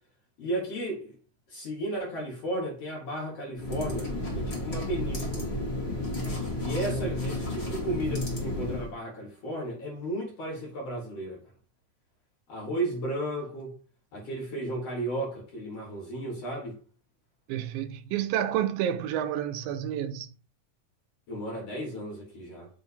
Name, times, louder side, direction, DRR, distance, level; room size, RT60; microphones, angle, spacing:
voice 1, 0.4-1.1 1.5-5.5 6.6-11.4 12.5-13.7 14.1-16.8 21.3-22.7, right 1 dB, 60° left, 1.9 m, -34 dB
sound 1, 3.5-8.9, left 1 dB, 35° left, 0.9 m, -32 dB
voice 2, 17.5-20.3, right 10 dB, 85° right, 2.3 m, -29 dB
7.0 x 2.7 x 5.5 m
omnidirectional pair, 4.1 m